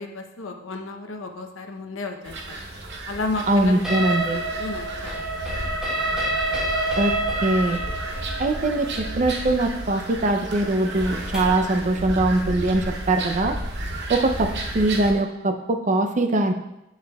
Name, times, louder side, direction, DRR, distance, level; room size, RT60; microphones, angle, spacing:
voice 1, 0.0-2.6 3.1-5.8, left 3 dB, 80° left, 4 dB, 0.7 m, -33 dB
sound 1, 2.2-15.1, right 1 dB, 60° right, 0.9 m, -33 dB
voice 2, 3.5-4.4 7.0-7.1 7.4-7.8 8.4-13.6 14.1-16.5, right 2 dB, 40° right, 6 dB, 0.5 m, -22 dB
sound 2, 3.8-11.7, right 2 dB, 5° right, 1.8 m, -28 dB
8.1 x 6.7 x 2.3 m, 0.90 s
head